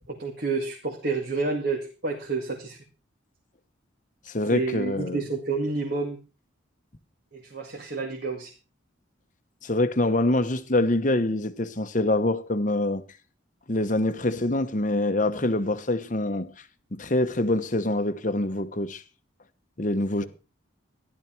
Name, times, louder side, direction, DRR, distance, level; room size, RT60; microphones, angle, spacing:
voice 1, 0.1-2.8 4.5-6.2 7.3-8.5, right 3 dB, 50° right, 2.3 m, -29 dB
voice 2, 4.3-5.2 9.6-13.0 13.7-16.5 16.9-19.0 19.8-20.2, left 1 dB, 40° left, 1.0 m, -25 dB
14.0 x 11.5 x 4.5 m
head